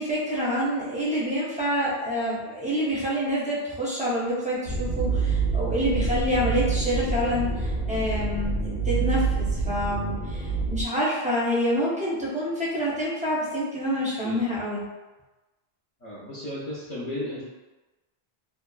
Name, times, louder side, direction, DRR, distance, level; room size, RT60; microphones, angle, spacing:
voice 1, 0.0-14.8, equal, 10° right, -7 dB, 0.4 m, -27 dB
sound 1, 4.6-10.8, right 4 dB, 85° left, 0.9 m, -27 dB
voice 2, 16.0-17.4, left 1 dB, 50° left, -10 dB, 0.6 m, -34 dB
2.7 x 2.2 x 2.3 m, 1.1 s
omnidirectional pair, 1.0 m